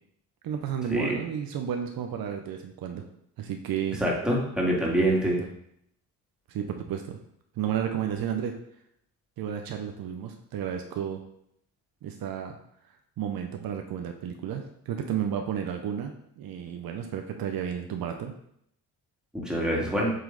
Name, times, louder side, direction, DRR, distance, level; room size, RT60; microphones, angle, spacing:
voice 1, 0.4-3.0 3.4-4.0 4.9-5.0 5.4-5.5 6.5-7.2 7.6-8.5 9.4-11.2 12.0-12.6 13.2-18.3, right 9 dB, 70° right, 4 dB, 0.7 m, -32 dB
voice 2, 4.0-5.4 19.3-20.1, right 1 dB, ahead, -3 dB, 2.0 m, -25 dB
7.6 x 3.2 x 3.9 m, 0.72 s
cardioid pair, 75°, 36 cm